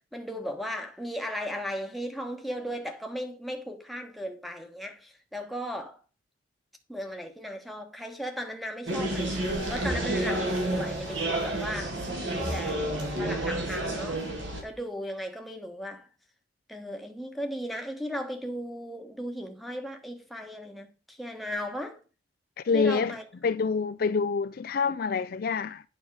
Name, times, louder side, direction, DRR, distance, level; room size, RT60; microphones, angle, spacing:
voice 1, 0.0-6.0 6.9-12.9 13.2-14.2 14.6-16.1 16.7-22.0 22.7-23.3, equal, ahead, 1.1 m, -36 dB
sound 1, 8.9-14.6, right 1 dB, 70° right, 2.9 m, -30 dB
voice 2, 22.6-23.2 23.4-25.8, left 5 dB, 50° left, 0.3 m, -26 dB
9.1 x 6.4 x 4.8 m
head